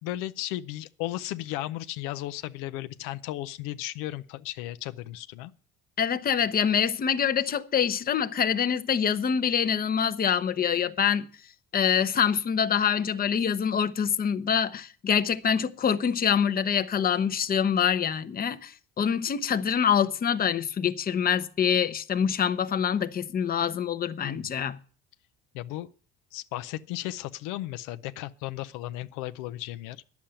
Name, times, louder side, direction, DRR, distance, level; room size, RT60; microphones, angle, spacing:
voice 1, 0.0-5.5 24.2-24.5 25.5-25.9 26.3-30.0, left 15 dB, 80° left, 0.6 m, -35 dB
voice 2, 6.0-11.3 11.7-24.8, left 8 dB, 30° left, 0.8 m, -25 dB
10.0 x 7.2 x 8.8 m
cardioid pair, 110°, 31 cm